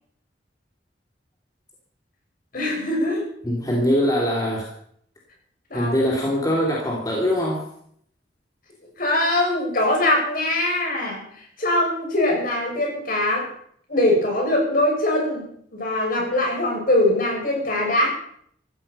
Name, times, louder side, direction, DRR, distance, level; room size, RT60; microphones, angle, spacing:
voice 1, 2.5-3.2 5.7-5.9 9.0-11.2 11.6-13.5 13.9-18.1, left 1 dB, 50° left, 0 dB, 7.2 m, -22 dB
voice 2, 3.4-4.7 5.7-7.7, equal, 20° left, -2 dB, 3.1 m, -22 dB
16.0 x 15.0 x 5.6 m, 0.66 s
head